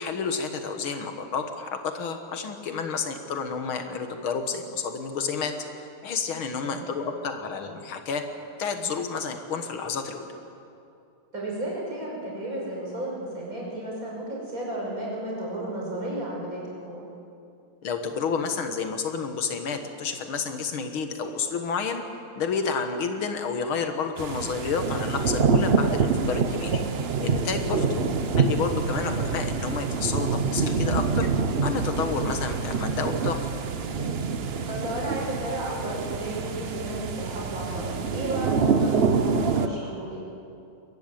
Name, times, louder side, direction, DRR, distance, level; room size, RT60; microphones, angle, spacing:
voice 1, 0.0-5.5 6.0-8.2 8.6-10.3 17.8-22.0 22.4-26.8 27.2-31.3 31.6-33.4 38.5-38.7, left 5 dB, 80° left, 7 dB, 2.2 m, -30 dB
voice 2, 11.3-17.1 27.7-28.1 34.7-40.2, right 1 dB, 40° right, -5 dB, 6.5 m, -33 dB
sound 1, 24.2-39.7, right 5 dB, 60° right, 0.6 m, -26 dB
22.0 x 15.0 x 9.0 m, 2.6 s
omnidirectional pair, 2.2 m